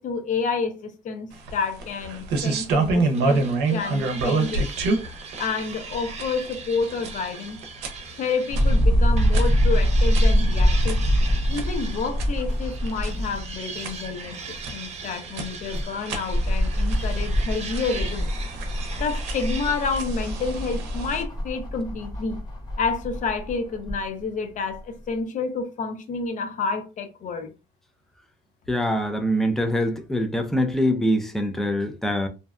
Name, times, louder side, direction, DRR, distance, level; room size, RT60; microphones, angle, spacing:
voice 1, 0.0-3.5 3.7-4.7 5.4-7.6 8.2-11.0 11.5-18.3 19.0-22.4 22.8-27.5, left 4 dB, 50° left, 0.6 m, -29 dB
sound 1, 1.3-21.2, right 3 dB, 90° right, 0.6 m, -30 dB
sound 2, 3.1-8.8 9.2-20.0, right 5 dB, 40° right, 0.6 m, -39 dB
sound 3, 8.5-13.6 14.0-14.1 15.4-24.0 24.8-24.9, equal, 25° left, 0.9 m, -24 dB
voice 2, 28.7-32.3, equal, ahead, 0.4 m, -24 dB
2.6 x 2.2 x 2.3 m
cardioid pair, 110°, 17 cm